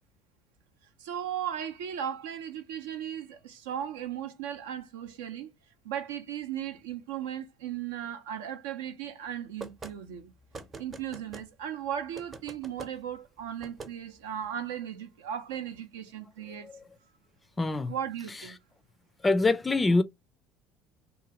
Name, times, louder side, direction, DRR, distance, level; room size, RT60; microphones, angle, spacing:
voice 1, 1.0-5.5 5.8-10.3 10.8-16.7 17.9-18.6, right 9 dB, 80° right, 0.5 m, -36 dB
sound 1, 9.6-9.9 10.5-11.5 12.2-12.9 13.6-13.9, right 3 dB, 35° right, 0.7 m, -43 dB
voice 2, 16.5-16.8 17.6-17.9 19.2-20.0, left 3 dB, 20° left, 0.4 m, -25 dB
2.8 x 2.4 x 2.8 m
hypercardioid pair, 70°, 0 cm